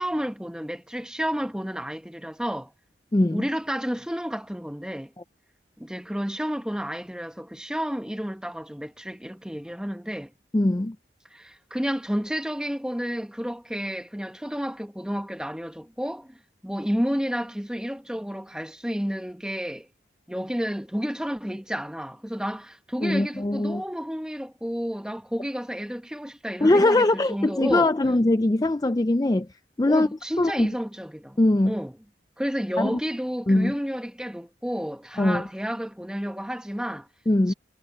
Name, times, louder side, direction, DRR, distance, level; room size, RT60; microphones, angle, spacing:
voice 1, 0.0-2.7 3.3-5.1 5.8-10.3 11.3-16.3 16.6-19.9 20.3-27.9 29.9-31.4 31.6-31.9 32.4-37.1 37.5-37.6, equal, 5° right, 1.1 m, -31 dB
voice 2, 3.1-3.5 10.5-11.0 23.0-23.8 26.6-29.5 29.8-30.1 30.4-30.7 31.4-31.8 32.8-33.0 33.5-33.7 35.2-35.4 37.3-37.5, left 2 dB, 20° left, 0.4 m, -21 dB
head